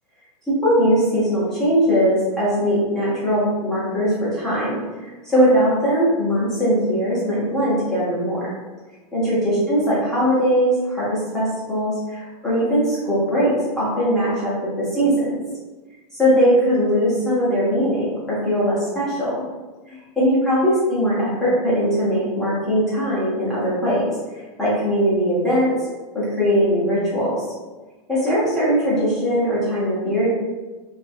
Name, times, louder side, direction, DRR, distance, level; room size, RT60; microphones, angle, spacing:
voice 1, 0.5-8.5 9.1-15.3 16.1-19.4 19.9-24.1 24.6-25.7 26.1-27.4 28.1-30.3, equal, 5° left, -11 dB, 0.6 m, -20 dB
2.5 x 2.3 x 2.5 m, 1.2 s
supercardioid pair, 165°, 20 cm